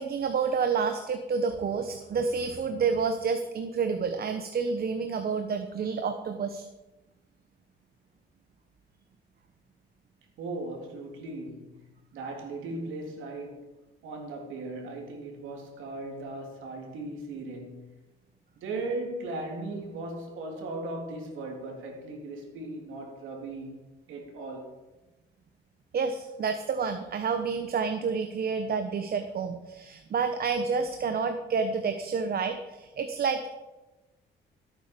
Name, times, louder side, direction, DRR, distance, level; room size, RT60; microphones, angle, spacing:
voice 1, 0.0-6.7 25.9-33.5, right 5 dB, 50° right, 1.1 m, -29 dB
voice 2, 10.4-11.8 12.1-13.7 14.0-17.9 18.6-23.8 24.1-24.7, right 2 dB, 85° right, 3.2 m, -37 dB
15.0 x 8.7 x 5.2 m
cardioid pair, 90°, 20 cm